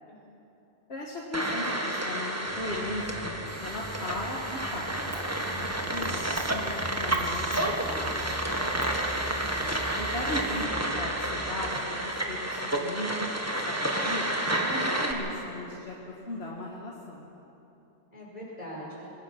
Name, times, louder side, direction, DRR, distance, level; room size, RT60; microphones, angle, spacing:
voice 1, 0.9-4.9 5.6-6.3 6.5-8.3 9.9-14.3 14.6-17.2, left 1 dB, 80° left, -2 dB, 2.0 m, -37 dB
sound 1, 1.3-15.1, right 1 dB, 15° right, 1.6 m, -30 dB
sound 2, 2.4-11.6, equal, 20° left, 4.4 m, -42 dB
sound 3, 3.5-10.7, right 3 dB, 65° right, 2.1 m, -47 dB
voice 2, 9.2-9.9 18.1-19.1, equal, 40° left, -5 dB, 6.0 m, -43 dB
23.0 x 19.0 x 6.0 m, 3.0 s
omnidirectional pair, 1.1 m